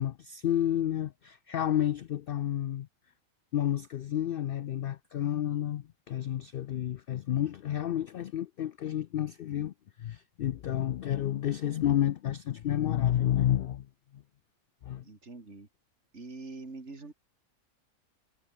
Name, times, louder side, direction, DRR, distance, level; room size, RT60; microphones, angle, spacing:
voice 1, 0.0-2.9 3.5-9.7 10.0-13.9 14.1-14.2 14.8-15.0, left 11 dB, 80° left, 0.5 m, -30 dB
voice 2, 15.0-15.7 16.1-17.1, right 3 dB, 50° right, 3.3 m, -44 dB
omnidirectional pair, 1.5 m